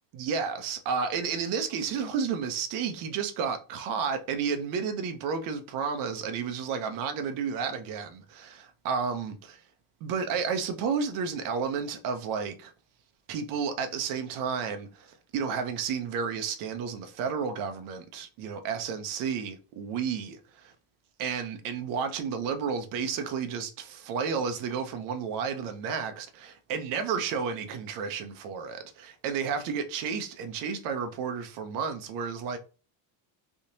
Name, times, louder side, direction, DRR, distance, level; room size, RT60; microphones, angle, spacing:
voice 1, 0.1-9.6 10.0-12.7 13.3-20.7 21.2-32.6, right 6 dB, 45° right, 0.6 m, -32 dB
3.5 x 2.8 x 2.6 m
cardioid pair, 175°, 49 cm